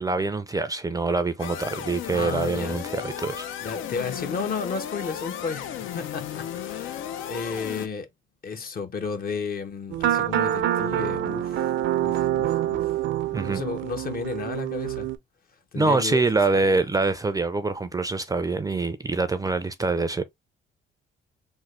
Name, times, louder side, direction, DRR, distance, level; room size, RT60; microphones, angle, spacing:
voice 1, 0.0-3.4 13.3-13.6 15.8-20.2, right 3 dB, 20° right, 0.4 m, -25 dB
sound 1, 1.4-7.9, left 9 dB, 80° left, 0.5 m, -34 dB
voice 2, 2.1-2.8 3.6-8.1 8.4-11.7 12.0-12.9 13.5-15.1 15.7-16.9, left 5 dB, 50° left, 0.8 m, -33 dB
sound 2, 9.9-15.2, right 11 dB, 75° right, 0.5 m, -26 dB
3.5 x 2.1 x 3.1 m
cardioid pair, 90°, 20 cm